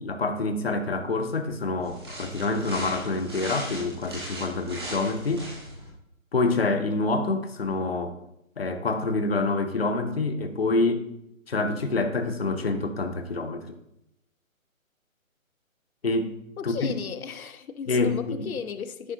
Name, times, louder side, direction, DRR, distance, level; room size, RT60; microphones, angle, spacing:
voice 1, 0.0-5.5 6.3-8.2 8.6-11.1 11.5-13.7 16.0-16.4 16.6-16.9 17.9-18.5, left 3 dB, 45° left, 0.7 m, -27 dB
sound 1, 1.8-5.9, right 1 dB, 20° right, 1.4 m, -38 dB
voice 2, 16.6-19.1, left 6 dB, 90° left, 0.6 m, -35 dB
9.9 x 5.3 x 2.7 m
hypercardioid pair, 175°, 41 cm